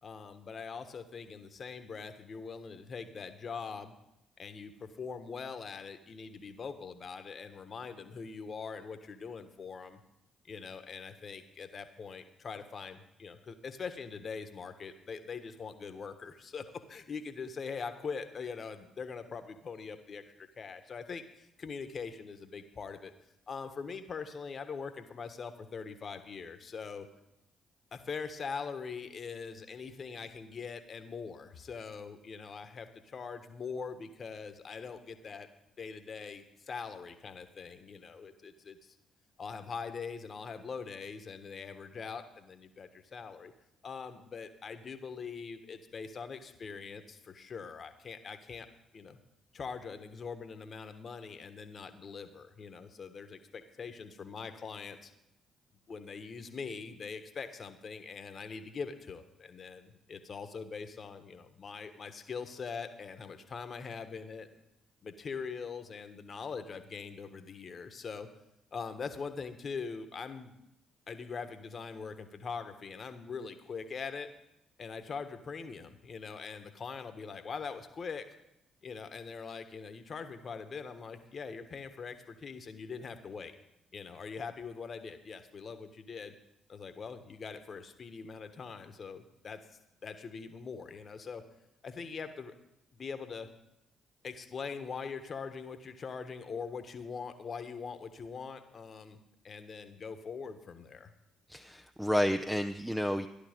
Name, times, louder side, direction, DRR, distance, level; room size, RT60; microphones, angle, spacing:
voice 1, 0.0-3.9 4.4-10.0 10.4-23.1 23.5-27.1 27.9-35.5 35.8-38.9 39.4-43.5 43.8-48.7 48.9-49.2 49.5-55.1 55.9-64.6 65.0-68.3 68.7-70.6 71.1-74.3 74.8-78.3 78.8-83.5 83.9-86.3 86.7-89.6 90.0-91.4 91.8-92.5 92.9-93.5 94.2-99.2 99.4-101.1, left 5 dB, 50° left, 9 dB, 1.4 m, -42 dB
voice 2, 101.5-103.3, equal, 5° right, 7 dB, 0.8 m, -30 dB
14.0 x 11.0 x 5.2 m, 0.84 s
hypercardioid pair, 50°, 0 cm